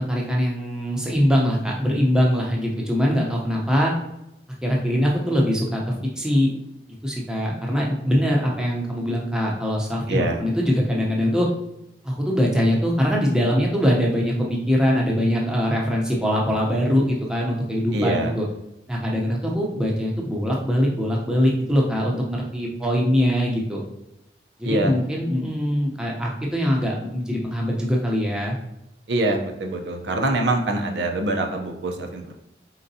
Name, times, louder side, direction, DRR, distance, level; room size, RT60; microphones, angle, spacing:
voice 1, 0.0-3.9 4.6-6.5 7.0-11.5 12.0-18.5 18.9-23.8 24.6-28.6, equal, 5° right, -3 dB, 0.6 m, -22 dB
voice 2, 10.1-10.4 17.9-18.3 24.6-24.9 29.1-32.3, right 2 dB, 80° right, 3 dB, 0.6 m, -24 dB
4.4 x 3.9 x 2.7 m, 0.86 s
head